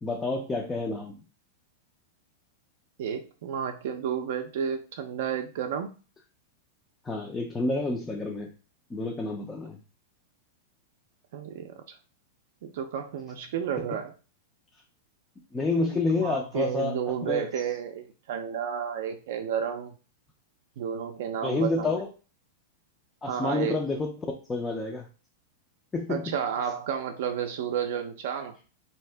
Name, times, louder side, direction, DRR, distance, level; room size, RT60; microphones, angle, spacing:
voice 1, 0.0-1.1 7.1-8.5 8.9-9.8 15.5-17.0 17.3-17.5 21.4-22.1 23.2-24.1 24.5-25.1 25.9-26.2, left 3 dB, 10° left, 1 dB, 0.3 m, -28 dB
voice 2, 3.0-5.9 11.3-12.0 12.6-14.1 15.7-19.9 20.8-22.0 23.3-23.8 26.1-28.6, right 8 dB, 60° right, 5 dB, 0.4 m, -32 dB
3.4 x 2.8 x 3.2 m, 0.35 s
supercardioid pair, 170°, 0 cm